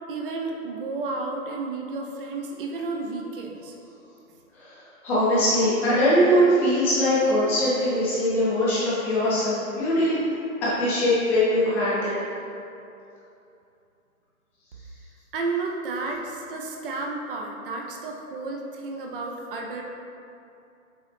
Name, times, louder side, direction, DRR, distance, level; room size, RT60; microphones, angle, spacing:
voice 1, 0.1-3.7 15.3-19.8, right 3 dB, 40° right, 0 dB, 0.7 m, -32 dB
voice 2, 4.5-10.2 10.6-12.2, equal, 5° left, -11 dB, 0.5 m, -22 dB
7.9 x 4.1 x 3.3 m, 2.7 s
hypercardioid pair, 145°, 43 cm